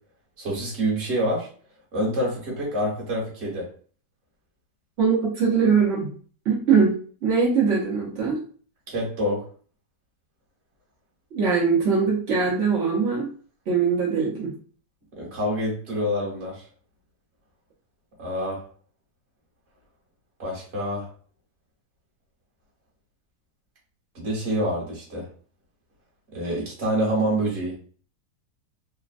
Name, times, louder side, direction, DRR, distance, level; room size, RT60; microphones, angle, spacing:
voice 1, 0.4-1.5 1.9-3.7 8.9-9.4 15.2-16.6 18.2-18.6 20.4-21.1 24.1-25.2 26.3-27.7, equal, 40° right, -4 dB, 1.3 m, -26 dB
voice 2, 5.0-6.1 6.5-6.9 7.2-8.4 11.3-13.3 13.7-14.5, right 5 dB, 65° right, -5 dB, 0.7 m, -21 dB
3.2 x 2.1 x 2.4 m, 0.43 s
omnidirectional pair, 1.9 m